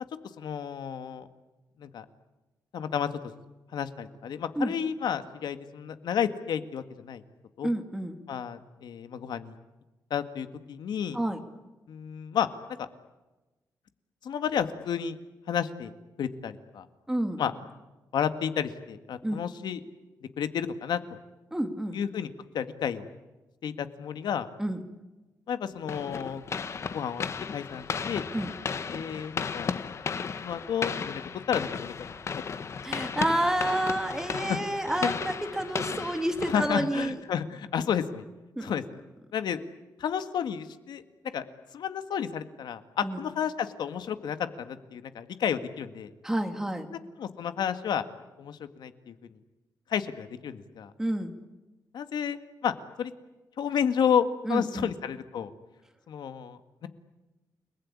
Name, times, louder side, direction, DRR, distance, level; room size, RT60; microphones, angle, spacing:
voice 1, 0.4-1.3 1.8-2.1 2.7-3.1 3.7-7.2 7.6-7.7 8.3-9.5 10.1-11.2 11.9-12.5 12.8-12.9 14.2-15.2 15.5-15.9 16.2-16.9 17.4-17.5 18.1-19.8 20.4-21.0 21.9-22.3 22.5-23.1 23.6-24.5 25.5-26.4 26.9-27.2 27.5-28.2 28.9-29.8 30.4-31.2 31.5-32.1 32.6-32.7 34.5-34.6 35.0-35.1 36.5-38.2 38.6-38.8 39.3-39.6 40.0-41.0 41.3-41.4 41.7-46.1 46.9-48.0 48.4-49.1 49.9-50.9 51.9-52.7 53.0-53.1 53.6-55.5 56.1-56.9, left 8 dB, 85° left, 10 dB, 1.8 m, -31 dB
voice 2, 7.6-8.2 11.1-11.4 17.1-17.4 19.2-19.4 21.5-22.0 24.6-24.8 28.3-28.5 32.8-37.2 38.6-38.8 43.0-43.2 46.2-46.9 51.0-51.3 54.5-54.9, right 1 dB, 5° right, 6 dB, 2.1 m, -29 dB
sound 1, 25.9-37.2, left 5 dB, 40° left, 1.2 m, -35 dB
29.5 x 20.0 x 9.7 m, 1.1 s
wide cardioid pair, 180°, 7 cm